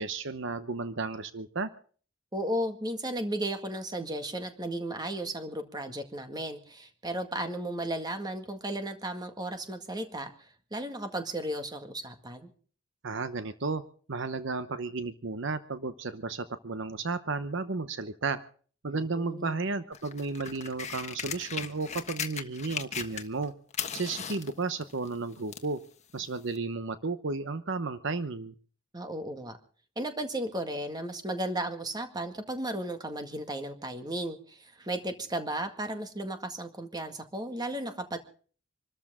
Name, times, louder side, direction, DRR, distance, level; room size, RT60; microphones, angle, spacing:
voice 1, 0.0-1.7 13.0-13.8 14.1-18.4 18.8-23.5 23.9-25.8 26.1-28.5, right 3 dB, 65° right, 12 dB, 0.9 m, -33 dB
voice 2, 2.3-12.5 18.9-19.7 28.9-29.6 30.0-38.2, right 1 dB, 20° right, 7 dB, 1.9 m, -35 dB
sound 1, 19.9-23.5 23.7-25.7 26.6-26.7, left 7 dB, 35° left, 1.4 m, -37 dB
26.0 x 13.5 x 3.7 m, 0.43 s
head